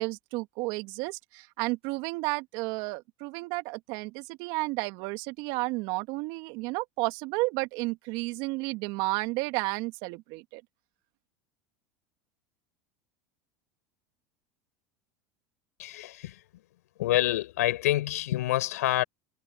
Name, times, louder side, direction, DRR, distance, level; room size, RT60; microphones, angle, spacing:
voice 1, 0.0-10.6, right 23 dB, 60° right, 2.1 m, -32 dB
voice 2, 15.8-16.4 17.0-19.0, left 15 dB, 80° left, 7.6 m, -27 dB
hypercardioid pair, 90°, 8 cm